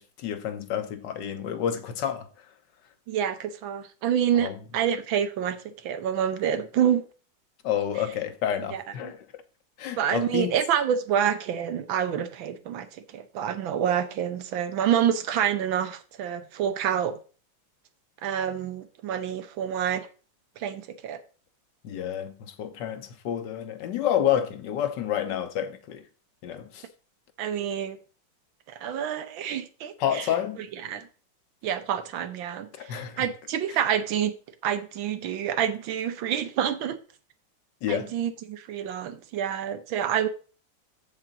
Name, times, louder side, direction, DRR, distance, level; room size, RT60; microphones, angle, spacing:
voice 1, 0.0-2.3 4.4-4.6 7.6-9.2 9.8-10.6 21.8-26.0 26.4-26.9 30.0-30.7 32.7-33.3 37.8-38.1, left 9 dB, 70° left, 1.4 m, -29 dB
voice 2, 3.1-7.0 8.7-9.1 10.0-17.2 18.2-20.1 20.6-21.2 27.4-28.0 28.7-30.3 30.8-31.1 31.6-34.3 34.6-37.0 37.9-40.3, right 9 dB, 90° right, 1.6 m, -27 dB
7.6 x 7.4 x 3.9 m
omnidirectional pair, 2.1 m